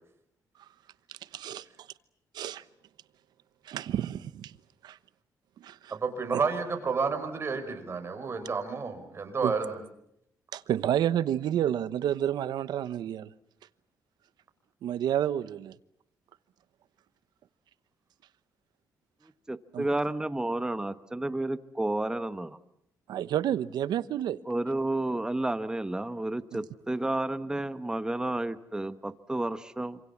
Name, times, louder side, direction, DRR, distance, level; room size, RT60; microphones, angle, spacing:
voice 1, 1.1-1.7 2.3-2.6 3.6-4.6 4.8-5.0 5.6-5.8 6.3-6.4 9.4-9.5 10.5-13.3 14.8-15.8 19.7-19.9 23.1-24.4, right 10 dB, 90° right, 1.0 m, -30 dB
voice 2, 5.9-9.8, right 5 dB, 35° right, 5.3 m, -30 dB
voice 3, 19.5-22.6 24.5-30.0, right 2 dB, 10° right, 1.2 m, -31 dB
27.5 x 26.5 x 7.3 m
cardioid pair, 120°, 7 cm